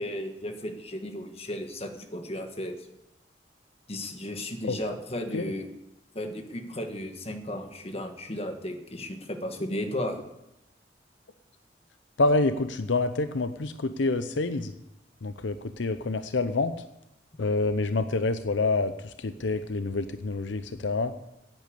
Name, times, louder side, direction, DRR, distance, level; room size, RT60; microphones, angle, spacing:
voice 1, 0.0-2.9 3.9-5.7 6.1-10.2, left 1 dB, 35° left, 5 dB, 1.5 m, -34 dB
voice 2, 12.2-14.7 15.2-16.7 17.4-21.1, left 3 dB, 75° left, 10 dB, 0.7 m, -27 dB
10.5 x 9.5 x 8.4 m, 0.88 s
head